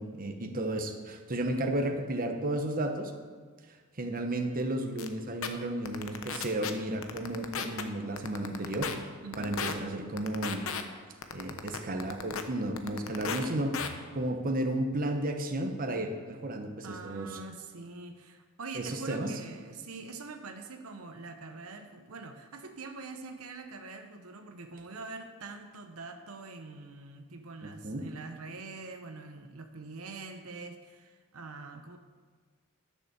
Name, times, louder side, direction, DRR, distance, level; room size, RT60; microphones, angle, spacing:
voice 1, 0.0-3.1 4.0-8.9 9.4-10.6 11.3-17.4 18.7-19.3 27.6-28.1, right 1 dB, 40° right, 4 dB, 1.0 m, -33 dB
sound 1, 5.0-5.1 5.4-5.5 5.8-6.7 7.0-7.8 8.2-8.9 9.3-9.7 10.2-10.8 11.2-12.4 12.8-13.4 13.7-13.9, left 6 dB, 70° left, 0.9 m, -34 dB
voice 2, 9.2-9.6 16.8-32.0, right 3 dB, 80° right, 5 dB, 0.9 m, -44 dB
11.0 x 6.7 x 6.9 m, 1.5 s
head